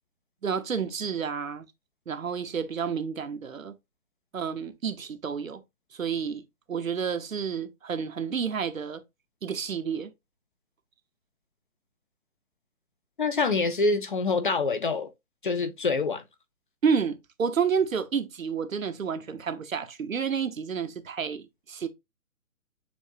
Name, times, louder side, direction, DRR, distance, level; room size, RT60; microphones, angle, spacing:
voice 1, 0.4-1.7 2.1-3.8 4.3-5.6 5.9-6.4 6.7-9.0 9.4-10.1 16.8-21.9, right 6 dB, 65° right, 0.9 m, -30 dB
voice 2, 13.2-15.1 15.4-16.2, left 3 dB, 35° left, 0.6 m, -26 dB
7.0 x 2.6 x 2.8 m
figure-of-eight pair, 135°, 43 cm